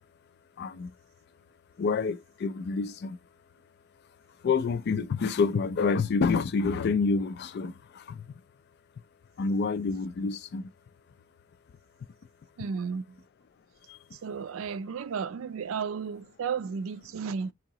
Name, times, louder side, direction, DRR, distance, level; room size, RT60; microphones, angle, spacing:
voice 1, 0.6-0.9 1.8-3.2 4.4-8.3 9.4-10.7 13.9-14.0, left 4 dB, 50° left, 0.3 m, -28 dB
voice 2, 12.6-13.0 14.2-17.5, right 6 dB, 75° right, 0.4 m, -33 dB
3.7 x 2.8 x 2.9 m
head